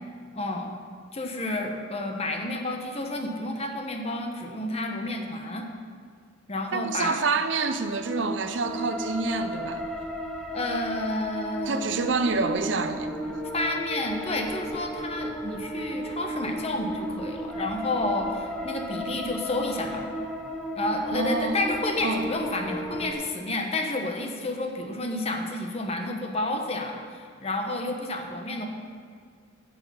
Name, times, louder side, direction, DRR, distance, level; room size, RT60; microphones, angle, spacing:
voice 1, 0.3-0.7 1.1-5.7 6.5-7.2 10.5-11.9 13.5-20.1 20.7-28.7, left 2 dB, 35° left, 3 dB, 1.1 m, -30 dB
voice 2, 6.7-9.8 11.7-13.1 21.1-21.6 22.0-22.2, right 4 dB, 75° right, 9 dB, 0.7 m, -27 dB
sound 1, 7.6-23.1, equal, ahead, 0.9 m, -34 dB
9.9 x 7.0 x 7.1 m, 2.1 s
head